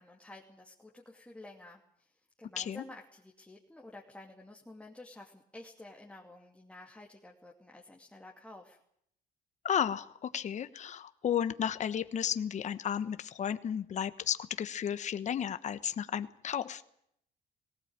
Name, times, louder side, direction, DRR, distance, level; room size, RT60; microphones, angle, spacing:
voice 1, 0.0-2.1 2.4-8.8, left 2 dB, 5° left, -2 dB, 2.7 m, -51 dB
voice 2, 9.6-16.9, left 8 dB, 45° left, 12 dB, 1.2 m, -33 dB
19.0 x 18.0 x 8.9 m, 0.71 s
cardioid pair, 110°, 17 cm